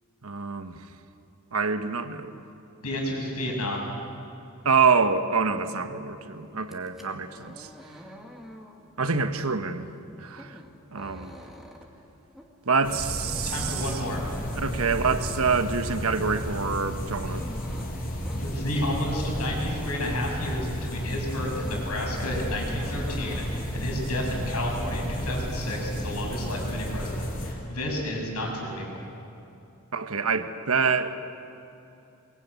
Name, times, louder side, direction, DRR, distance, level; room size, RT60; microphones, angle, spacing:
voice 1, 0.2-0.8 1.5-2.4 4.6-7.7 9.0-9.9 10.2-10.6 10.9-11.4 12.7-14.0 14.6-17.5 29.9-31.1, right 5 dB, 70° right, 9 dB, 1.3 m, -26 dB
voice 2, 2.8-3.9 13.4-14.2 18.4-29.1, left 1 dB, 90° left, 0 dB, 7.0 m, -31 dB
sound 1, 6.6-20.7 21.0-22.0 22.2-23.7, equal, ahead, 2.3 m, -47 dB
sound 2, 12.8-27.5, equal, 40° left, 6.0 m, -32 dB
22.5 x 21.0 x 9.5 m, 2.8 s
head